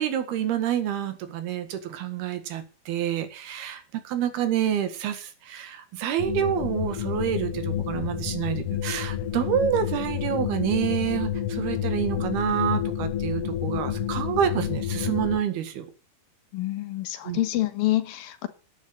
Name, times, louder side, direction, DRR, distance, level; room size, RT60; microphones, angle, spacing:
voice 1, 0.0-15.9 17.3-17.4, right 9 dB, 85° right, 3.8 m, -28 dB
sound 1, 6.2-15.4, left 10 dB, 55° left, 1.8 m, -29 dB
voice 2, 16.5-18.5, left 15 dB, 75° left, 3.0 m, -27 dB
11.5 x 9.1 x 8.0 m
omnidirectional pair, 4.3 m